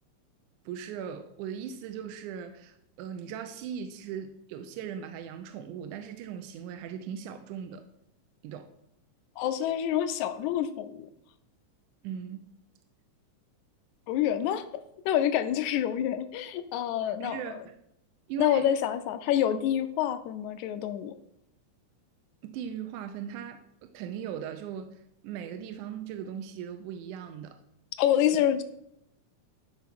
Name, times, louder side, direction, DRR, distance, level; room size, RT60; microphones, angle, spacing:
voice 1, 0.7-7.8 8.4-8.7 12.0-12.4 17.2-17.7 18.3-18.7 22.4-27.6, right 8 dB, 75° right, 7 dB, 2.1 m, -39 dB
voice 2, 9.4-11.1 14.1-14.6 15.1-17.6 18.4-21.1 28.0-28.6, left 10 dB, 75° left, 10 dB, 1.8 m, -27 dB
12.5 x 4.6 x 5.9 m, 0.79 s
omnidirectional pair, 3.8 m